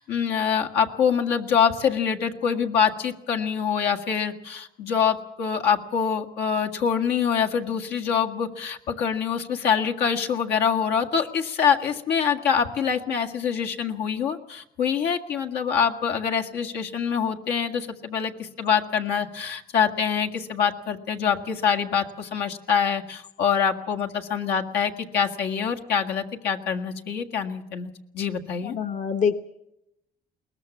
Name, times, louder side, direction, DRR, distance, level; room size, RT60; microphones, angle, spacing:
voice 1, 0.0-28.8, left 7 dB, 80° left, 4 dB, 1.9 m, -25 dB
voice 2, 28.6-29.4, left 6 dB, 45° left, 7 dB, 1.2 m, -25 dB
22.0 x 19.5 x 7.2 m, 0.85 s
cardioid pair, 110°, 17 cm